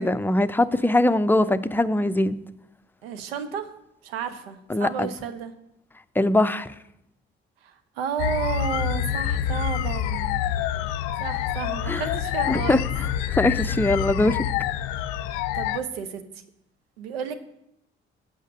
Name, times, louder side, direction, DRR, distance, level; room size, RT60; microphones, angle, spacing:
voice 1, 0.0-2.3 4.7-5.1 6.2-6.7 11.9-12.0 12.5-12.8 13.3-14.4, left 2 dB, 5° left, 11 dB, 0.6 m, -21 dB
voice 2, 3.0-3.7 4.0-5.5 7.6-10.4 11.2-12.9 15.5-16.4 17.0-17.3, right 7 dB, 75° right, 10 dB, 0.9 m, -32 dB
sound 1, 8.2-15.8, left 10 dB, 65° left, 0.5 m, -27 dB
8.2 x 6.6 x 7.4 m, 0.81 s
figure-of-eight pair, 40°, 31 cm